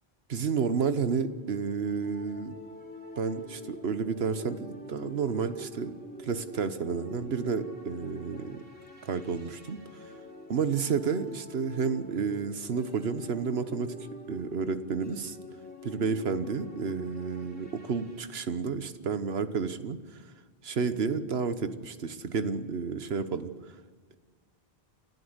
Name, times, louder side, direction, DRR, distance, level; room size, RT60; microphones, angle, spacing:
voice 1, 0.3-2.5 3.2-8.6 9.0-10.1 10.5-13.9 14.3-15.4 15.8-20.2 20.6-23.7, right 5 dB, 75° right, 11 dB, 1.3 m, -31 dB
sound 1, 1.1-18.4, left 1 dB, 10° left, 3.3 m, -46 dB
29.0 x 12.5 x 8.0 m, 1.5 s
omnidirectional pair, 1.1 m